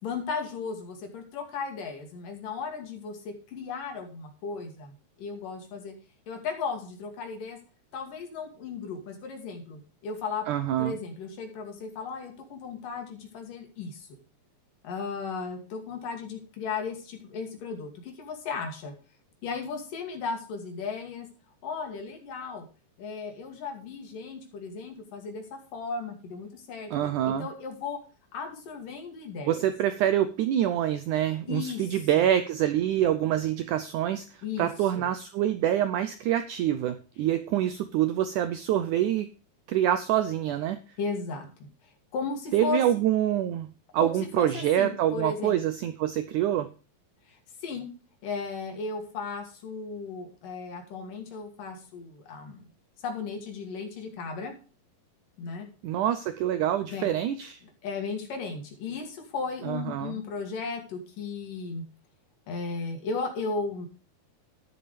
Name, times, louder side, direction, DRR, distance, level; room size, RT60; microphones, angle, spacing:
voice 1, 0.0-5.9 6.3-7.6 7.9-10.5 10.8-14.2 14.8-18.9 19.4-21.3 21.6-22.7 23.0-28.0 28.3-29.7 31.5-31.9 32.2-32.3 34.4-35.1 41.0-41.5 42.1-42.8 44.0-45.6 47.3-47.4 47.6-47.9 48.2-52.7 53.0-54.5 55.4-55.7 56.9-57.1 57.8-61.8 62.5-63.9, left 4 dB, 60° left, 4 dB, 3.9 m, -35 dB
voice 2, 10.5-11.0 26.9-27.5 29.5-39.3 39.7-40.8 42.5-43.7 43.9-46.7 55.8-57.6 59.6-60.2, right 11 dB, 90° right, 11 dB, 1.7 m, -26 dB
12.5 x 10.0 x 3.3 m, 0.34 s
omnidirectional pair, 4.4 m